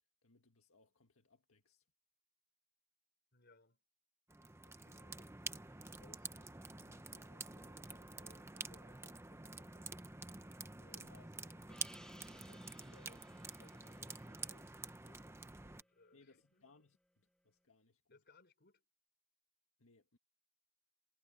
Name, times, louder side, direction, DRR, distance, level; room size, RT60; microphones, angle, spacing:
voice 1, 0.2-1.9 10.9-11.3 16.1-18.2 19.8-20.2, left 3 dB, 85° left, 1.8 m, -68 dB
voice 2, 3.3-3.8 4.7-10.0 10.8-16.6 18.1-18.9, left 2 dB, 50° left, 3.7 m, -68 dB
sound 1, 4.3-15.8, right 3 dB, 10° right, 0.8 m, -49 dB
Gong, 11.7-16.5, equal, 5° left, 2.8 m, -63 dB
head